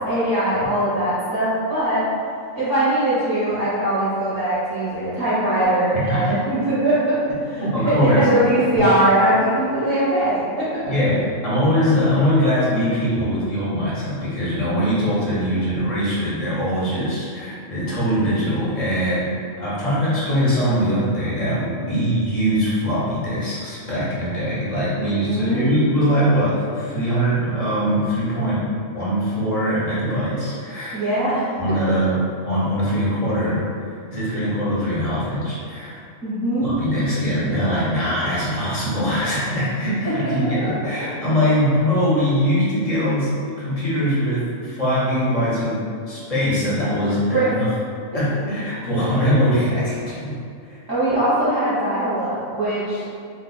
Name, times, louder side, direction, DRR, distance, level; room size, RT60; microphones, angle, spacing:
voice 1, 0.1-2.0 2.5-10.9 25.0-25.7 30.9-31.5 36.2-36.7 40.6-40.7 47.3-47.6 50.9-53.0, right 1 dB, 20° right, -13 dB, 0.6 m, -21 dB
voice 2, 5.9-6.4 7.6-8.3 10.8-19.3 19.6-31.0 31.6-32.2 32.4-33.6 34.1-36.0 36.6-43.3 43.6-45.8 46.1-47.7 48.1-50.3 50.6-50.8, equal, 30° left, -9 dB, 0.8 m, -22 dB
2.4 x 2.3 x 3.8 m, 2.4 s
omnidirectional pair, 1.4 m